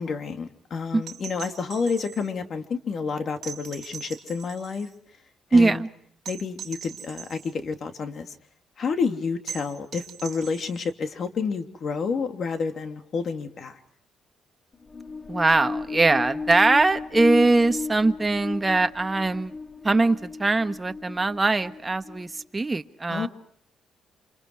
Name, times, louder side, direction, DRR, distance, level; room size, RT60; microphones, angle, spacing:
voice 1, 0.0-4.9 5.5-5.8 6.3-8.3 8.8-13.8 23.1-23.3, left 5 dB, 55° left, 6 dB, 3.0 m, -29 dB
sound 1, 1.0-2.3 3.4-4.9 6.2-7.5 9.5-10.9 12.7-12.8, right 9 dB, 65° right, 1.6 m, -41 dB
voice 2, 5.5-5.9 15.3-19.5 19.8-23.3, right 3 dB, 20° right, 9 dB, 1.4 m, -21 dB
sound 2, 14.7-22.4, left 3 dB, 30° left, 2.7 m, -35 dB
28.5 x 27.5 x 4.8 m, 0.65 s
cardioid pair, 90°, 0 cm